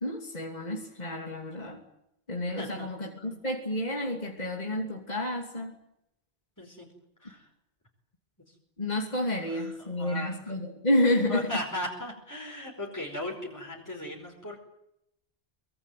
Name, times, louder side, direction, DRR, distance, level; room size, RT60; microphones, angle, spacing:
voice 1, 0.0-1.8 2.3-5.7 8.8-11.5, left 1 dB, 40° left, 2 dB, 3.1 m, -30 dB
voice 2, 2.6-2.9 6.6-6.9 7.2-7.5 9.4-10.4 11.3-14.6, left 1 dB, 15° left, -1 dB, 5.0 m, -37 dB
24.0 x 21.0 x 9.4 m, 0.81 s
omnidirectional pair, 1.0 m